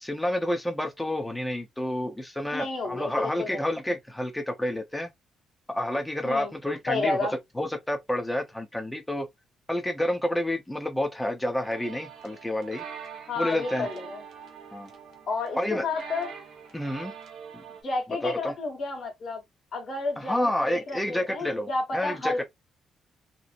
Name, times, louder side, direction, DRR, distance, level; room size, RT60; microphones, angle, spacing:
voice 1, 0.0-5.1 5.7-7.3 7.6-9.3 9.7-12.8 13.4-13.9 14.7-14.9 15.6-15.9 16.7-17.1 17.5-17.6 18.2-18.5 20.2-22.4, left 1 dB, 10° left, 0.6 m, -29 dB
voice 2, 2.5-3.7 6.2-6.5 6.9-7.3 13.3-14.2 15.3-16.3 17.8-19.4 19.7-22.4, left 3 dB, 55° left, 1.3 m, -31 dB
sound 1, 11.6-17.8, right 7 dB, 75° right, 0.9 m, -44 dB
2.9 x 2.0 x 2.5 m
cardioid pair, 90°, 0 cm